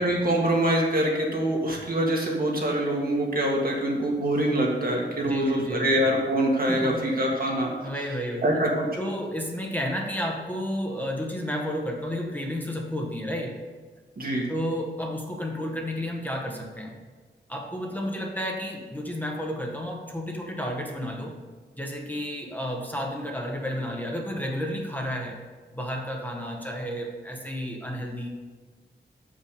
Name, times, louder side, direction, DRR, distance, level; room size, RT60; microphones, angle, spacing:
voice 1, 0.0-7.7 8.4-8.9 14.2-14.5, right 1 dB, 55° right, -2 dB, 1.7 m, -24 dB
voice 2, 5.2-5.9 6.7-7.0 7.3-7.5 7.8-8.5 9.0-13.6 14.5-17.0 17.5-21.4 21.7-25.4 25.7-28.3, equal, 10° left, 0 dB, 1.0 m, -32 dB
7.0 x 5.4 x 5.2 m, 1.4 s
wide cardioid pair, 85°, 18 cm